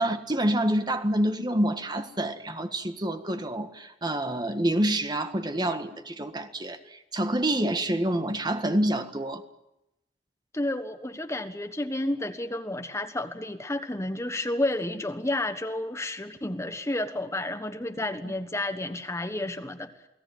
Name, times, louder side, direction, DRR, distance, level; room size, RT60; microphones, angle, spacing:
voice 1, 0.0-9.4 18.0-18.3, right 1 dB, 25° right, 1.6 m, -27 dB
voice 2, 10.5-19.9, left 1 dB, 15° left, 1.4 m, -31 dB
29.0 x 18.5 x 9.4 m
head